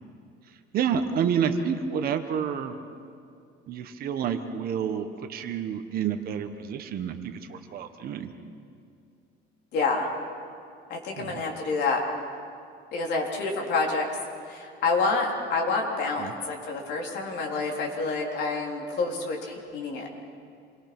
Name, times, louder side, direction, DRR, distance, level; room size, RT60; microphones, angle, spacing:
voice 1, 0.7-2.8 3.7-7.2 7.5-8.3 11.1-11.4 16.2-16.3, right 7 dB, 50° right, 7 dB, 1.4 m, -29 dB
voice 2, 9.7-10.1 10.9-12.0 12.9-14.1 14.5-20.1, left 3 dB, 60° left, 0 dB, 3.8 m, -28 dB
27.5 x 22.5 x 6.1 m, 2.5 s
cardioid pair, 170°, 20 cm